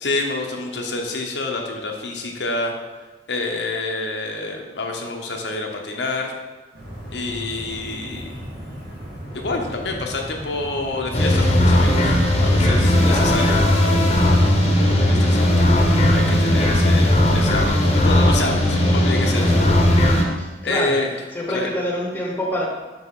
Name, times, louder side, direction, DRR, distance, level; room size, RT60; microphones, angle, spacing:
voice 1, 0.0-2.8 3.3-6.3 7.1-8.3 9.3-20.4 20.6-21.1 21.5-21.7, left 2 dB, 85° left, 1 dB, 0.9 m, -28 dB
sound 1, 6.7-19.8, equal, 65° right, 1.9 m, -36 dB
sound 2, 11.1-20.2, left 1 dB, 35° left, 0.9 m, -17 dB
voice 2, 12.8-13.3 20.4-21.0 21.3-22.7, equal, 10° left, -1 dB, 1.0 m, -27 dB
6.1 x 5.2 x 3.7 m, 1.2 s
head